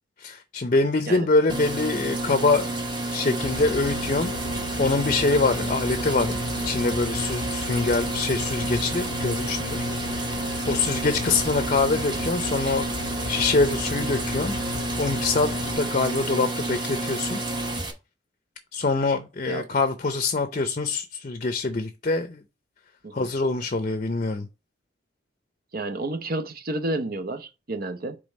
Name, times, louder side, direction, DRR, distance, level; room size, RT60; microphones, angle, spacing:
voice 1, 0.2-2.7 3.1-4.3 4.8-9.8 10.1-10.3 10.7-12.9 13.3-14.5 15.0-15.5 15.8-17.4 18.7-22.4 23.1-24.5, left 3 dB, 40° left, 0.6 m, -24 dB
sound 1, 1.5-17.9, right 2 dB, 25° right, 1.0 m, -30 dB
sound 2, 3.4-15.7, left 3 dB, 85° left, 0.6 m, -36 dB
voice 2, 25.7-28.2, right 2 dB, 50° right, 0.7 m, -31 dB
5.2 x 3.4 x 5.3 m
head